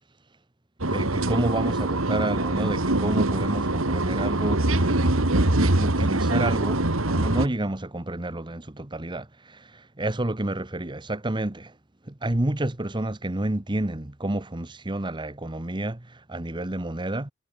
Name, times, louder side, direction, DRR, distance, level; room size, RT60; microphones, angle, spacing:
voice 1, 0.8-11.7 12.1-17.3, right 1 dB, 20° right, 1.2 m, -30 dB
sound 1, 0.8-7.5, right 2 dB, 75° right, 2.4 m, -23 dB
head